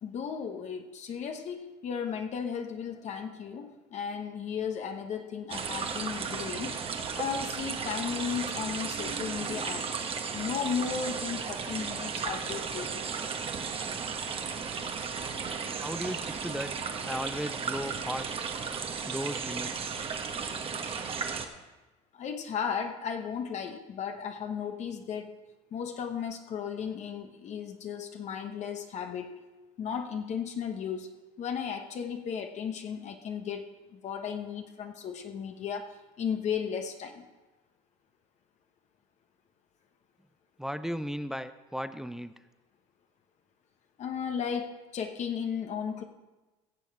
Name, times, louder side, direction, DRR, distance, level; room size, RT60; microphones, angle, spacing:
voice 1, 0.0-6.8 7.1-9.9 10.3-13.1 13.9-14.0 22.1-25.3 25.7-29.3 29.8-31.1 31.4-37.2 44.0-46.0, left 7 dB, 50° left, 5 dB, 1.1 m, -35 dB
sound 1, 5.5-21.5, right 5 dB, 35° right, 1.2 m, -35 dB
voice 2, 15.8-16.7 17.1-18.5 19.1-20.0 40.6-42.3, equal, 5° right, 12 dB, 0.5 m, -36 dB
16.5 x 7.1 x 4.8 m, 1.1 s
supercardioid pair, 90°, 15 cm